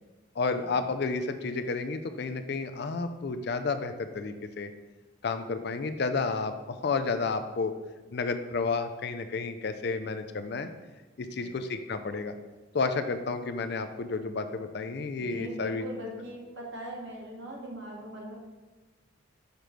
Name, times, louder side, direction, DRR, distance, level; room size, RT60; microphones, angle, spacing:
voice 1, 0.4-4.7 5.2-7.7 8.1-10.7 11.2-12.4 12.7-15.8, left 4 dB, 50° left, 9 dB, 0.4 m, -31 dB
voice 2, 15.2-18.4, equal, 60° right, -2 dB, 1.4 m, -41 dB
6.6 x 3.1 x 5.0 m, 1.3 s
head